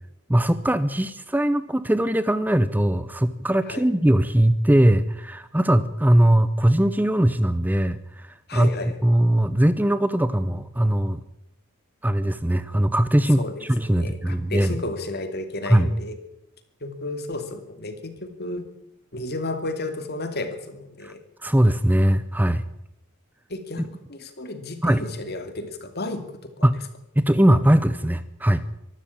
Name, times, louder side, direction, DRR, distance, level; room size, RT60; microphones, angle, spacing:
voice 1, 0.3-8.7 9.0-11.2 12.0-14.8 15.7-15.9 21.0-21.1 21.4-22.6 23.8-23.9 24.8-25.0 26.6-26.8 27.2-28.6, right 1 dB, 10° right, 13 dB, 0.7 m, -20 dB
voice 2, 8.5-9.0 13.4-16.2 16.8-18.7 19.1-21.2 23.5-26.7, left 2 dB, 50° left, 8 dB, 2.6 m, -33 dB
24.0 x 12.5 x 8.6 m, 0.84 s
head